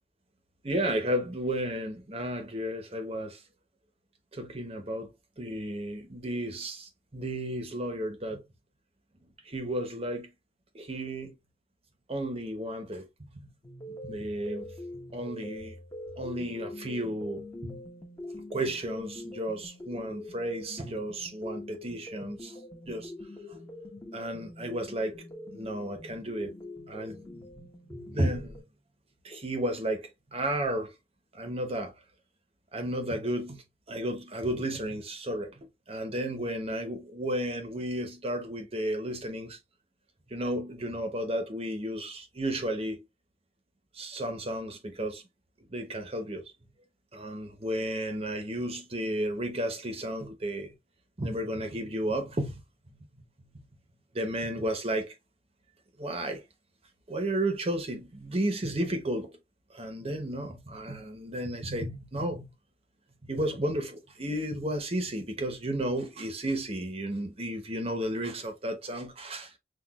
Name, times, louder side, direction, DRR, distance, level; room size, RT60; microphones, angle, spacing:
voice 1, 0.6-3.4 4.3-5.1 5.4-8.4 9.4-10.3 10.7-11.3 12.1-13.0 13.3-13.5 13.9-14.7 15.1-15.7 16.2-17.8 18.5-22.6 22.8-23.1 24.1-25.1 25.5-26.5 26.9-28.6 29.2-30.9 31.3-31.9 32.7-35.5 35.9-39.6 40.3-43.0 43.9-45.2 45.7-46.4 47.1-50.7 51.2-52.6 52.9-53.0 53.5-53.6 54.1-55.1 56.0-56.4 57.1-59.3 59.7-62.5 63.2-69.5, right 1 dB, 30° right, 1.0 m, -33 dB
sound 1, 13.6-28.6, left 2 dB, 20° left, 1.1 m, -44 dB
6.1 x 2.5 x 2.4 m
head